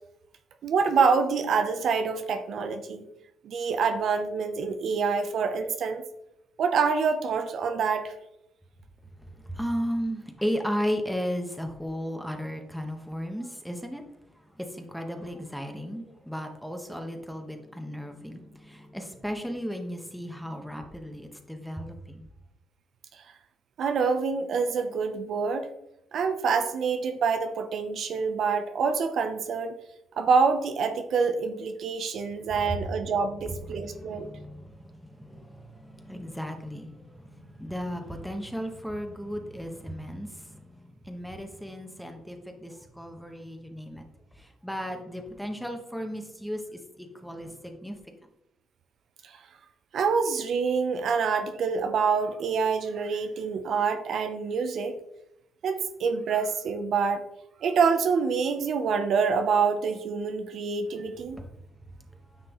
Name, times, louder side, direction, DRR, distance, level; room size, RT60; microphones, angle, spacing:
voice 1, 0.6-3.1 3.4-6.0 6.6-8.1 23.8-25.7 26.1-29.8 30.2-34.3 49.2-49.3 49.9-54.9 55.6-57.2 57.6-61.4, right 5 dB, 65° right, 7 dB, 0.8 m, -26 dB
voice 2, 9.2-14.1 14.3-22.3 32.7-32.9 33.5-40.8 41.0-44.0 44.4-48.0 61.4-61.5, equal, ahead, 4 dB, 1.4 m, -35 dB
9.7 x 6.0 x 3.1 m, 0.84 s
cardioid pair, 90°, 0 cm